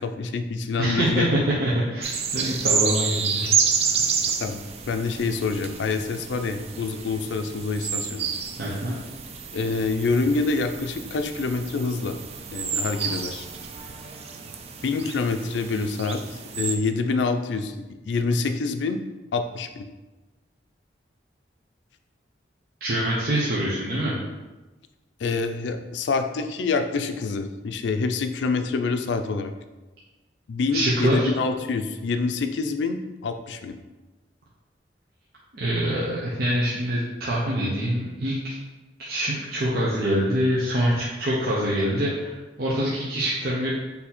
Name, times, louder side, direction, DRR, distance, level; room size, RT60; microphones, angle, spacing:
voice 1, 0.0-1.3 4.4-8.3 9.5-12.2 12.5-13.5 14.8-19.0 19.3-19.9 25.2-29.5 30.5-33.8, left 4 dB, 80° left, 7 dB, 0.4 m, -26 dB
voice 2, 0.8-3.5 8.6-9.0 22.8-24.2 30.7-31.3 35.5-38.5 39.0-43.7, right 1 dB, 55° right, -7 dB, 0.7 m, -25 dB
sound 1, 2.0-16.8, right 6 dB, 35° right, 0.3 m, -29 dB
4.1 x 2.7 x 4.2 m, 1.1 s
head